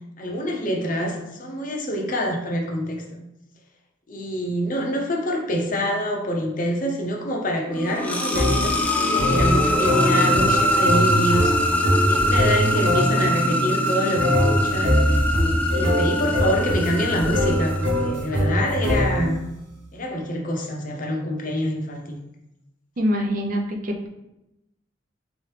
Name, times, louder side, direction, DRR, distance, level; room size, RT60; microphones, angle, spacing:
voice 1, 0.2-3.3 4.1-11.5 12.0-15.0 15.7-19.4 19.9-22.2, equal, 45° left, 0 dB, 0.7 m, -26 dB
sound 1, 7.7-18.4, left 1 dB, 10° left, 0.4 m, -23 dB
sound 2, 8.3-19.5, equal, 90° right, 0.9 m, -23 dB
voice 2, 23.0-24.1, equal, 45° right, 3 dB, 0.5 m, -24 dB
3.7 x 3.0 x 3.3 m, 0.88 s
head